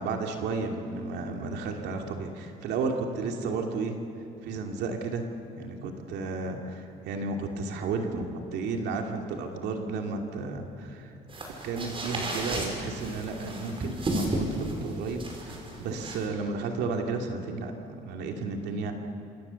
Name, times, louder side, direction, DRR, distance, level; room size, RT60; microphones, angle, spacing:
voice 1, 0.0-4.0 4.4-5.3 5.5-11.1 11.6-17.7 18.0-18.9, right 4 dB, 80° right, 3 dB, 2.7 m, -33 dB
sound 1, 11.3-16.3, right 1 dB, 30° right, 5.8 m, -33 dB
27.5 x 27.0 x 7.1 m, 2.8 s
cardioid pair, 110°, 17 cm